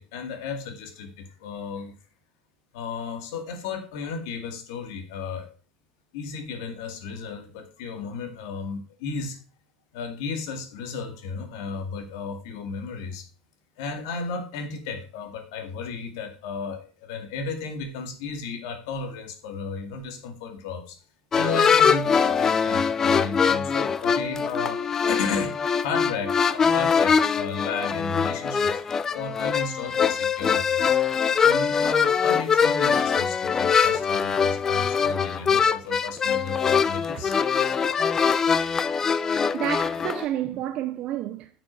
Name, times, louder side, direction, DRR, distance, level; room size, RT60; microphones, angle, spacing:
voice 1, 0.0-1.9 2.7-5.5 6.1-9.4 9.9-13.3 13.8-21.0 21.3-25.5 25.8-28.7 29.1-30.8 31.4-37.4, left 5 dB, 85° left, 2.2 m, -34 dB
sound 1, 21.3-40.2, left 6 dB, 20° left, 0.4 m, -23 dB
voice 2, 39.5-41.5, right 12 dB, 45° right, 0.6 m, -30 dB
9.7 x 6.2 x 4.6 m
cardioid pair, 155°, 2 cm